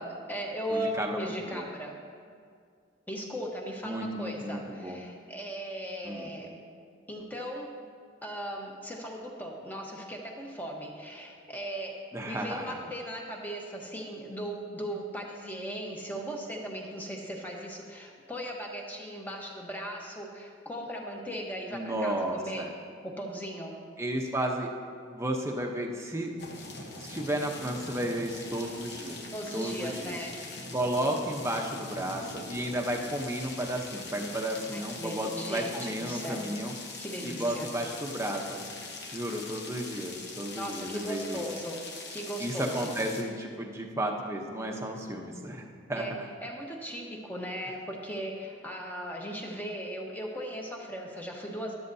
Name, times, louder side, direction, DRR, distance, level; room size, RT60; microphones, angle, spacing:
voice 1, 0.0-1.9 3.1-6.5 7.1-7.7 8.2-22.7 23.0-23.8 29.3-30.3 34.7-36.5 37.0-37.7 40.6-41.8 42.1-42.9 45.9-46.1 46.4-51.7, equal, 10° left, -1 dB, 1.1 m, -38 dB
voice 2, 0.7-1.7 3.8-5.0 6.0-6.3 12.1-12.9 21.7-22.7 24.0-24.7 25.0-26.3 27.0-29.2 29.5-30.2 30.7-36.7 37.2-38.6 38.9-41.4 42.4-46.1, right 1 dB, 15° right, 1 dB, 0.8 m, -33 dB
sound 1, 26.4-43.2, left 3 dB, 55° left, 1.1 m, -42 dB
13.5 x 11.0 x 2.7 m, 2.2 s
head